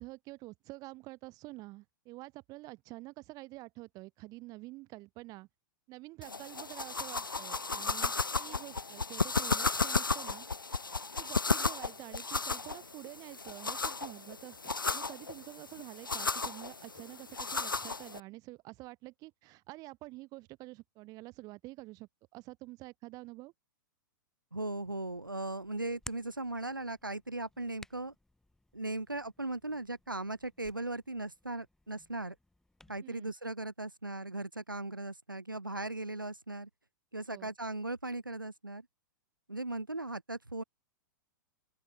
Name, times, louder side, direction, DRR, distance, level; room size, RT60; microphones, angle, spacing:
voice 1, 0.0-5.5 5.9-10.5 11.1-14.6 14.9-23.5 33.0-33.3 37.3-37.5, right 21 dB, 35° right, 2.8 m, -48 dB
sound 1, 6.2-18.2, left 4 dB, 90° left, 0.4 m, -34 dB
voice 2, 24.5-28.1 28.7-32.3 32.9-36.7 37.1-38.9 39.5-40.6, right 2 dB, 90° right, 3.0 m, -38 dB
Hands, 24.6-33.0, left 1 dB, 5° left, 3.1 m, -57 dB
open air
figure-of-eight pair, 100°, 11 cm